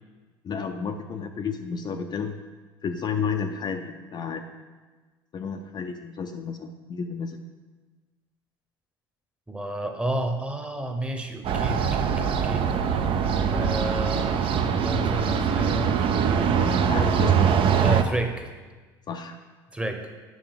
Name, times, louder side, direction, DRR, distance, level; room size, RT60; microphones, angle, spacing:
voice 1, 0.4-2.4 2.8-4.5 5.3-7.4 16.8-17.5 19.1-19.4, left 6 dB, 35° left, 5 dB, 0.6 m, -31 dB
voice 2, 9.5-12.6 13.5-16.5 17.8-18.5 19.7-20.1, right 1 dB, 10° right, 4 dB, 1.0 m, -31 dB
sound 1, 11.4-18.0, right 7 dB, 45° right, 0.6 m, -23 dB
8.5 x 5.5 x 3.6 m, 1.3 s
hypercardioid pair, 70°, 12 cm